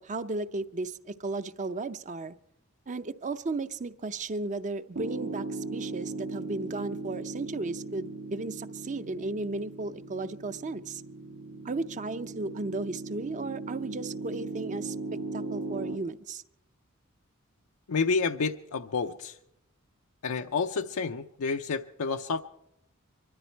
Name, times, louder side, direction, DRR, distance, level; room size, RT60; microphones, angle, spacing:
voice 1, 0.0-2.4 2.9-11.0 11.6-15.0 15.3-16.4, right 3 dB, 35° right, 12 dB, 0.6 m, -35 dB
Piano, 4.9-16.0, right 3 dB, 85° right, 1.7 m, -38 dB
voice 2, 17.9-19.4 20.2-22.4, left 4 dB, 80° left, 5 dB, 0.5 m, -29 dB
24.5 x 13.0 x 4.5 m, 0.83 s
head